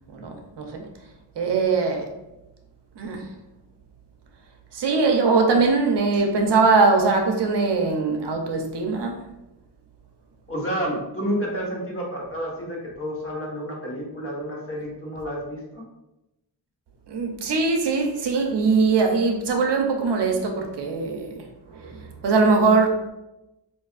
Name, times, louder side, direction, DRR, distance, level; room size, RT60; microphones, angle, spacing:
voice 1, 0.1-0.9 1.4-2.1 3.0-3.3 4.7-9.2 17.1-23.1, right 4 dB, 70° right, 3 dB, 0.7 m, -21 dB
voice 2, 10.5-15.9, equal, 30° left, -3 dB, 1.1 m, -30 dB
4.5 x 2.6 x 2.4 m, 0.94 s
wide cardioid pair, 100°, 42 cm